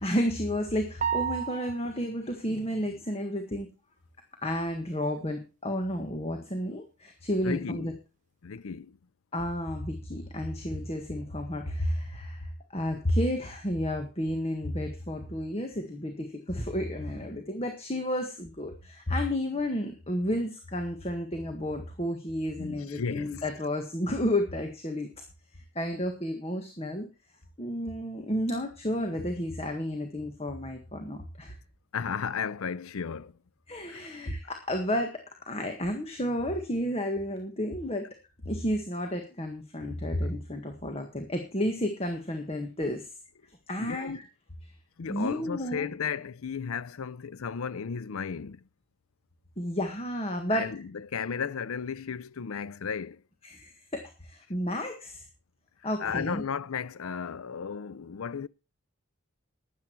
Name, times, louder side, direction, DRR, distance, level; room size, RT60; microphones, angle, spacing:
voice 1, 0.0-3.7 4.4-7.9 9.3-25.1 25.7-27.1 27.6-31.6 33.7-38.1 38.4-43.1 43.7-44.2 45.1-45.9 49.6-50.7 53.4-55.3 55.8-56.4, equal, 30° left, 1.7 m, -31 dB
sound 1, 1.0-2.1, right 8 dB, 35° right, 1.0 m, -31 dB
voice 2, 7.4-7.9 8.4-9.0 22.6-23.3 31.9-33.3 33.9-34.0 43.8-44.2 45.0-48.6 50.5-53.2 56.0-58.5, left 6 dB, 80° left, 0.5 m, -34 dB
13.0 x 10.0 x 4.6 m
head